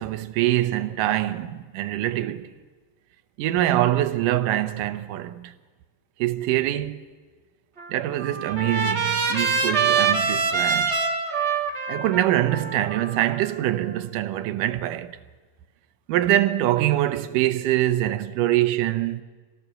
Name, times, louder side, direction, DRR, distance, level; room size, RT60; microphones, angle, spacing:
voice 1, 0.0-2.5 3.4-5.5 6.2-7.0 7.9-11.0 11.9-15.2 16.1-19.2, right 14 dB, 75° right, 2.3 m, -24 dB
Trumpet, 7.8-13.9, right 5 dB, 60° right, 0.7 m, -25 dB
25.5 x 18.0 x 6.9 m
omnidirectional pair, 3.9 m